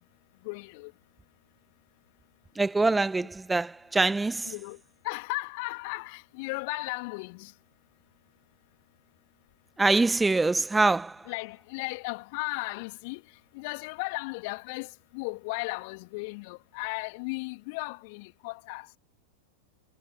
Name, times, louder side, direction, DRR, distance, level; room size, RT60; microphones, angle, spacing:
voice 1, 0.4-0.9 4.4-7.5 11.3-13.2 13.5-18.9, left 28 dB, 45° left, 2.8 m, -36 dB
voice 2, 2.5-4.5 9.8-11.3, right 3 dB, 10° right, 1.3 m, -24 dB
figure-of-eight pair, 90°, 0 cm